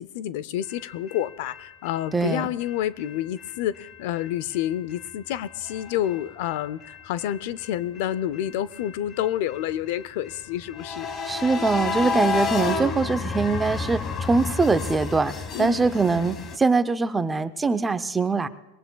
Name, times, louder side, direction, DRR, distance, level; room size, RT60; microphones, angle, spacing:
voice 1, 0.0-11.1 15.5-15.9, left 12 dB, 65° left, 18 dB, 0.5 m, -29 dB
sound 1, 0.7-16.6, left 4 dB, 30° left, 1.3 m, -33 dB
voice 2, 2.1-2.5 11.3-15.3 15.6-18.5, right 4 dB, 15° right, 12 dB, 0.6 m, -23 dB
22.0 x 18.0 x 2.3 m, 0.99 s
supercardioid pair, 130°, 0 cm